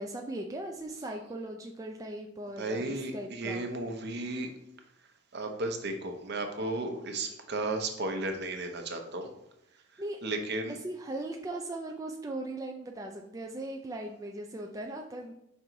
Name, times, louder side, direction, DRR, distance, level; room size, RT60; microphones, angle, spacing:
voice 1, 0.0-3.6 10.0-10.2 10.7-15.3, right 1 dB, 15° right, 1 dB, 0.4 m, -39 dB
voice 2, 2.6-4.5 5.3-9.3 10.2-10.8, right 2 dB, 55° right, 4 dB, 0.8 m, -34 dB
5.3 x 3.9 x 4.5 m, 0.82 s
head